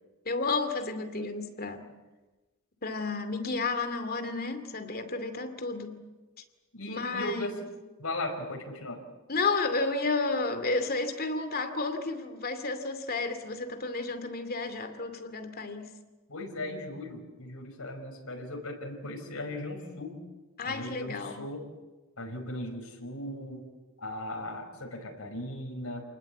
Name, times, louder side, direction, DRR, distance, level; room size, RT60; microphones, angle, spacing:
voice 1, 0.3-1.8 2.8-6.0 6.9-7.6 9.3-15.9 20.6-21.5, left 3 dB, 45° left, 8 dB, 2.5 m, -32 dB
voice 2, 6.7-7.6 8.0-9.0 16.3-20.2 20.6-21.6 22.2-23.6 24.0-26.0, left 1 dB, 80° left, 2 dB, 5.2 m, -37 dB
29.0 x 20.0 x 8.5 m, 1.2 s
head